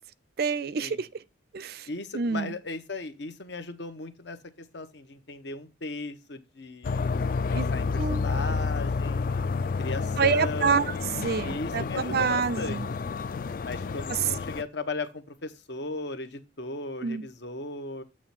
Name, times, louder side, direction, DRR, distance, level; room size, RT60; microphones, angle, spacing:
voice 1, 0.4-1.1 1.5-1.9 2.1-2.5 7.5-7.7 8.0-8.2 10.2-12.9 14.1-14.2 17.0-17.3, right 5 dB, 50° right, 0.4 m, -27 dB
voice 2, 1.9-7.1 7.5-9.2 9.6-11.0 11.4-13.2 13.6-18.0, left 3 dB, 60° left, 1.0 m, -37 dB
sound 1, 6.8-14.6, left 4 dB, 45° left, 0.3 m, -30 dB
8.6 x 3.2 x 5.8 m
head